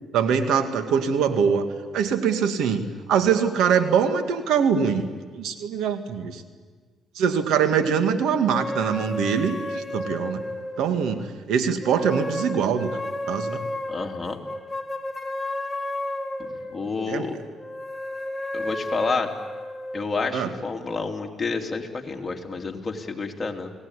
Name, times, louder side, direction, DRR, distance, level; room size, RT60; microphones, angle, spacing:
voice 1, 0.1-1.7 1.9-5.1 5.3-6.4 7.2-10.4 10.8-12.9 13.3-13.6 17.1-17.3 20.3-20.5, right 7 dB, 85° right, 7 dB, 2.2 m, -23 dB
sound 1, 8.5-11.3 11.8-17.0 17.6-20.1, left 1 dB, 10° left, 4.2 m, -32 dB
voice 2, 13.9-14.4 16.7-17.4 18.5-19.3 19.9-23.7, left 4 dB, 25° left, 2 dB, 3.2 m, -29 dB
29.5 x 18.5 x 10.0 m, 1.5 s
cardioid pair, 90°, 0 cm